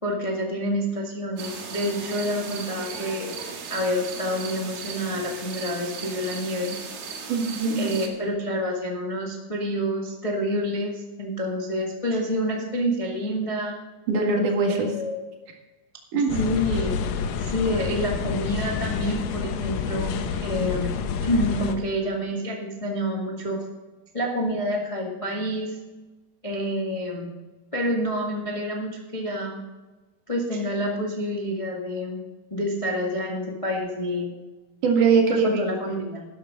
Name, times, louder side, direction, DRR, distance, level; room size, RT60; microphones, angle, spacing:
voice 1, 0.0-3.3 3.7-6.7 7.7-13.8 14.7-15.2 16.4-17.0 17.4-20.1 20.4-20.9 21.2-23.6 24.1-25.8 26.4-27.3 27.7-29.6 30.3-32.2 32.5-34.3 35.3-36.2, equal, 30° left, -1 dB, 0.6 m, -28 dB
sound 1, 1.4-8.1, right 5 dB, 80° right, 3.6 m, -36 dB
voice 2, 7.3-8.0 14.1-14.9 16.1-16.5 34.8-35.6, right 4 dB, 65° right, 1 dB, 3.3 m, -22 dB
sound 2, 16.3-21.8, left 6 dB, 85° left, 2.8 m, -28 dB
13.0 x 11.5 x 3.8 m, 1.2 s
omnidirectional pair, 4.0 m